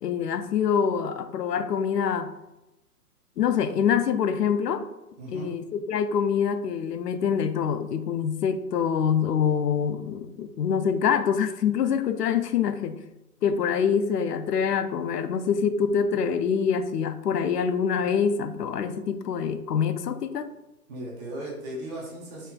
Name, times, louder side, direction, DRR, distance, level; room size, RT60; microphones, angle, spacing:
voice 1, 0.0-2.3 3.4-4.8 5.3-13.0 13.4-20.5, left 7 dB, 85° left, 10 dB, 0.6 m, -25 dB
voice 2, 5.2-5.5 20.9-22.5, right 1 dB, 25° right, -5 dB, 1.1 m, -37 dB
4.3 x 3.4 x 2.3 m, 0.96 s
hypercardioid pair, 145°, 47 cm